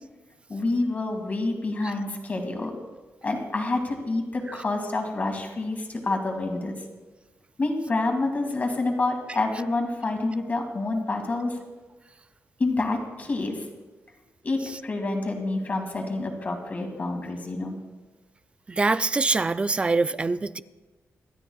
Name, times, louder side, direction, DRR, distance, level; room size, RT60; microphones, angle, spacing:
voice 1, 0.5-2.8 3.2-6.8 7.6-11.6 12.6-13.7 14.4-17.8, left 2 dB, 30° left, 3 dB, 2.1 m, -28 dB
voice 2, 18.7-20.6, right 3 dB, 20° right, 14 dB, 0.3 m, -24 dB
27.0 x 12.5 x 2.3 m, 1.2 s
wide cardioid pair, 170°, 5 cm